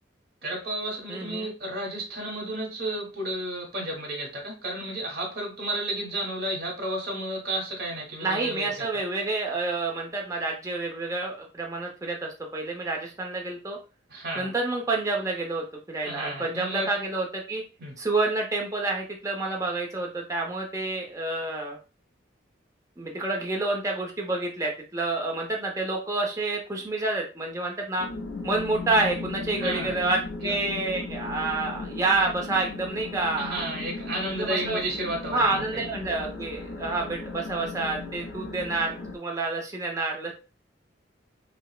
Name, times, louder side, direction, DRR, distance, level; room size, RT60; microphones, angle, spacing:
voice 1, 0.4-8.9 14.1-14.5 16.0-16.9 17.8-17.9 29.6-29.9 30.4-30.5 33.4-35.8, right 1 dB, 55° right, -1 dB, 1.3 m, -32 dB
voice 2, 1.1-1.5 8.2-13.8 14.4-17.6 18.0-21.8 23.0-28.1 28.4-33.6 34.4-34.8 35.3-40.3, right 3 dB, 15° right, 0 dB, 0.7 m, -28 dB
sound 1, 28.0-39.2, left 3 dB, 90° left, 0.6 m, -37 dB
5.1 x 2.0 x 2.3 m, 0.32 s
head